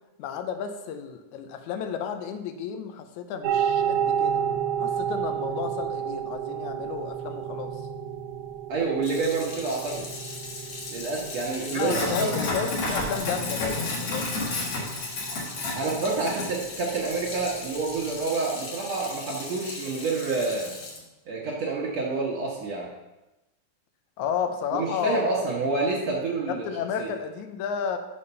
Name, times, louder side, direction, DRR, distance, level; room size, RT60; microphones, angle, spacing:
voice 1, 0.2-4.4 4.8-7.8 11.7-14.3 24.2-25.4 26.5-28.0, left 7 dB, 80° left, 7 dB, 2.0 m, -32 dB
sound 1, 3.4-18.2, right 8 dB, 85° right, 1.5 m, -32 dB
voice 2, 8.7-10.1 10.9-12.4 15.8-20.7 21.3-22.9 24.7-26.6 27.0-27.1, right 3 dB, 65° right, -4 dB, 2.0 m, -28 dB
Sink (filling or washing), 9.0-21.0, left 2 dB, 55° left, 2.2 m, -33 dB
6.8 x 5.0 x 5.4 m, 1.0 s
omnidirectional pair, 3.5 m